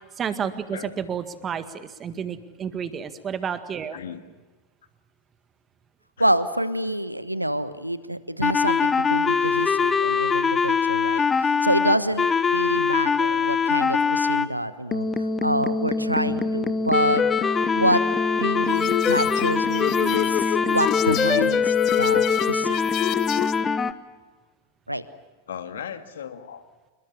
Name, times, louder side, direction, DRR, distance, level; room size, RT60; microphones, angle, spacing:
voice 1, 0.2-4.0, right 7 dB, 25° right, 11 dB, 1.9 m, -31 dB
voice 2, 6.2-17.2 17.7-18.0 18.3-22.8 24.9-25.0, right 1 dB, 90° right, 14 dB, 1.3 m, -27 dB
sound 1, 8.4-14.5 14.9-23.9, left 5 dB, 15° left, 1.1 m, -23 dB
voice 3, 16.2-16.6 25.5-26.6, left 8 dB, 65° left, 9 dB, 2.0 m, -37 dB
sound 2, 18.7-23.6, left 14 dB, 35° left, 0.8 m, -27 dB
27.5 x 21.5 x 7.2 m, 1.3 s
figure-of-eight pair, 90°, 0 cm